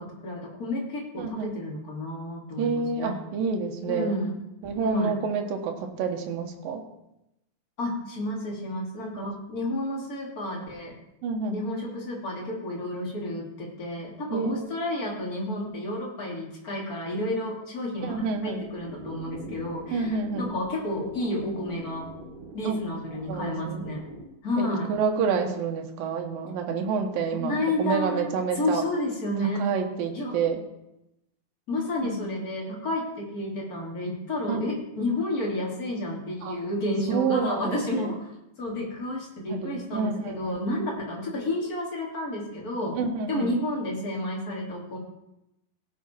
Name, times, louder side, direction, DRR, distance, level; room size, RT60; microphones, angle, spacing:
voice 1, 0.0-3.1 3.8-4.4 4.8-5.1 7.8-11.0 11.5-22.1 22.5-24.0 24.4-24.9 27.3-28.3 28.5-29.6 30.1-30.3 31.7-38.3 38.6-43.0 43.3-45.0, left 1 dB, 25° left, -2 dB, 2.7 m, -31 dB
voice 2, 1.2-1.5 2.6-4.2 4.6-6.8 9.2-9.3 11.2-11.6 14.3-14.6 18.0-18.6 19.9-20.5 22.6-22.8 23.3-23.8 24.6-28.8 29.6-30.6 32.0-32.3 34.5-34.6 36.4-36.6 37.1-38.1 39.5-40.6 41.3-41.5 42.9-43.5, right 5 dB, 75° right, 3 dB, 2.9 m, -29 dB
sound 1, 18.0-24.2, right 2 dB, 20° right, 5.7 m, -43 dB
17.0 x 7.3 x 4.4 m, 0.87 s
omnidirectional pair, 4.3 m